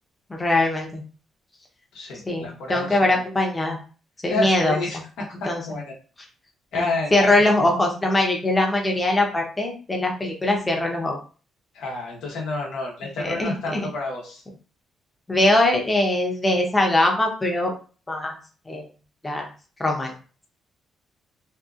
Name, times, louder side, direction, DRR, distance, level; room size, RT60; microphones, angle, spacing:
voice 1, 0.3-1.0 2.3-3.8 4.2-4.8 5.5-5.6 6.7-11.2 13.2-13.9 15.3-17.7 18.1-18.3 18.7-18.9 19.2-19.5 19.8-20.1, left 1 dB, 15° left, 0 dB, 0.6 m, -22 dB
voice 2, 1.9-3.0 4.3-5.9 6.7-7.5 11.7-14.4, left 2 dB, 85° left, -2 dB, 0.8 m, -29 dB
2.7 x 2.3 x 2.4 m, 0.38 s
cardioid pair, 90°, 0 cm